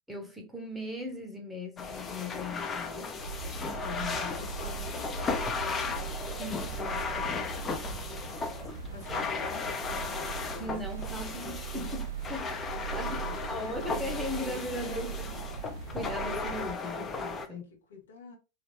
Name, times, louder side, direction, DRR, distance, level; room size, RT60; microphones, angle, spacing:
voice 1, 0.1-3.2 3.8-4.3 6.4-7.6 9.1-9.3 10.6-12.6 12.9-17.6, left 1 dB, 5° right, 0.8 m, -39 dB
sound 1, 1.8-17.5, left 4 dB, 20° left, 0.5 m, -36 dB
sound 2, 3.2-16.7, right 6 dB, 65° right, 0.3 m, -40 dB
voice 2, 4.0-6.0 8.9-11.5 13.2-15.3 17.5-18.4, left 3 dB, 65° left, 1.1 m, -48 dB
3.2 x 2.6 x 3.1 m
figure-of-eight pair, 90°, 0 cm